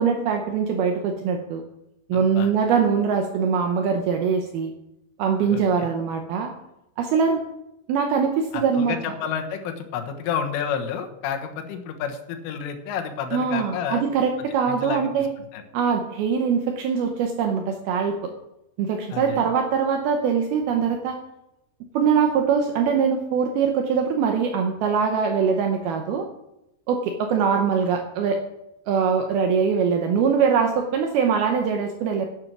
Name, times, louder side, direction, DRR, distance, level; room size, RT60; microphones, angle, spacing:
voice 1, 0.0-1.6 2.1-4.7 5.2-6.5 7.0-7.4 7.9-9.0 13.3-15.3 15.7-18.3 18.8-21.2 21.9-26.3 26.9-28.4 28.9-32.3, right 6 dB, 80° right, 4 dB, 2.3 m, -22 dB
voice 2, 2.1-2.5 5.5-5.9 8.5-14.0 14.7-15.3 15.5-15.6 19.1-19.5, left 7 dB, 85° left, 5 dB, 3.8 m, -30 dB
11.0 x 9.7 x 6.1 m, 0.86 s
omnidirectional pair, 5.5 m